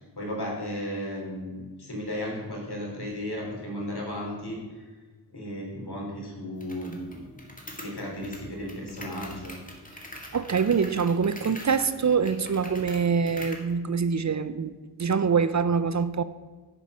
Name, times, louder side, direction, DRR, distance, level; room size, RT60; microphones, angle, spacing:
voice 1, 0.2-4.8 5.3-7.4 7.8-9.5, equal, 70° left, -2 dB, 3.4 m, -35 dB
sound 1, 6.6-13.7, left 1 dB, 20° left, 1.9 m, -44 dB
voice 2, 10.3-16.2, right 6 dB, 45° right, 13 dB, 0.5 m, -25 dB
10.0 x 5.5 x 6.2 m, 1.4 s
wide cardioid pair, 60°, 41 cm